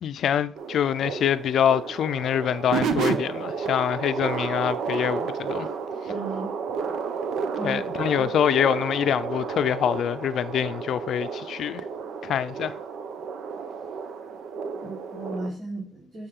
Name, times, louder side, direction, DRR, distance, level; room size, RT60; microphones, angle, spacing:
voice 1, 0.0-5.7 7.6-11.8 12.2-12.7, left 9 dB, 70° left, 0.4 m, -25 dB
sound 1, 0.5-15.5, right 6 dB, 75° right, 0.8 m, -31 dB
voice 2, 6.1-6.5 7.6-8.3 14.8-16.3, right 2 dB, 50° right, 3.9 m, -36 dB
9.7 x 6.2 x 3.7 m
cardioid pair, 90°, 0 cm